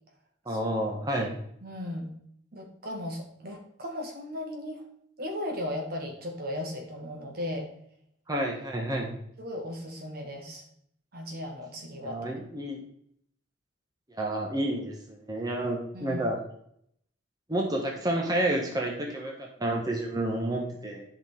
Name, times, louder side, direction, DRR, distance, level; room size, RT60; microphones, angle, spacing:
voice 1, 0.4-1.3 8.3-9.1 12.0-12.8 14.1-16.4 17.5-21.0, right 1 dB, 20° right, 0 dB, 1.3 m, -30 dB
voice 2, 1.6-2.1 2.5-4.8 5.2-7.7 9.4-10.6 11.1-12.3 15.9-16.2, left 1 dB, 55° right, 2 dB, 1.7 m, -36 dB
11.0 x 5.8 x 3.6 m, 0.68 s
head